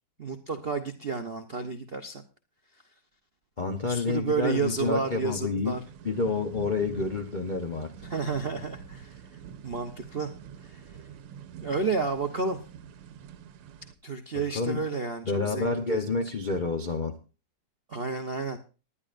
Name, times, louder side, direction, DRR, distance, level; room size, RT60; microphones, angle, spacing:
voice 1, 0.2-2.2 3.8-5.8 8.0-9.2 9.6-10.3 10.6-10.8 11.6-12.6 14.0-16.0 17.9-18.6, right 4 dB, 65° right, 0.5 m, -31 dB
voice 2, 3.6-5.8 6.0-8.1 14.5-14.8 15.2-17.2, left 4 dB, 80° left, 0.4 m, -29 dB
sound 1, 5.7-13.9, right 7 dB, 90° right, 1.8 m, -46 dB
19.5 x 11.0 x 2.5 m
omnidirectional pair, 2.4 m